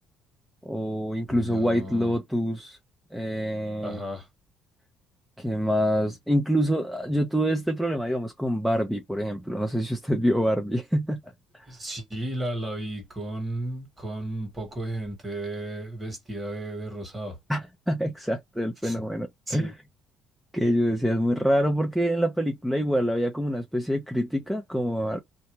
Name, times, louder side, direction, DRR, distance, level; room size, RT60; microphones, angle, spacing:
voice 1, 0.6-2.8 3.1-4.0 5.4-11.2 17.5-19.7 20.5-25.2, equal, ahead, 0.5 m, -26 dB
voice 2, 1.3-2.1 3.8-4.3 11.7-17.4 18.8-19.0 19.5-19.7, right 1 dB, 20° right, 1.5 m, -34 dB
2.7 x 2.2 x 3.0 m
cardioid pair, 130°, 0 cm